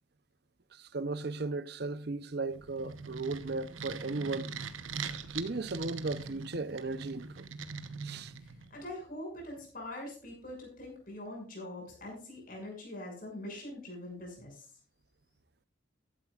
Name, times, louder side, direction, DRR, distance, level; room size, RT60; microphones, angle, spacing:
voice 1, 0.7-4.5 5.3-7.5 8.0-8.3, right 3 dB, 55° right, 0.7 m, -36 dB
sound 1, 2.5-8.8, right 5 dB, 85° right, 1.0 m, -42 dB
voice 2, 8.4-14.7, left 1 dB, 45° left, 6.7 m, -43 dB
14.5 x 12.5 x 2.5 m
head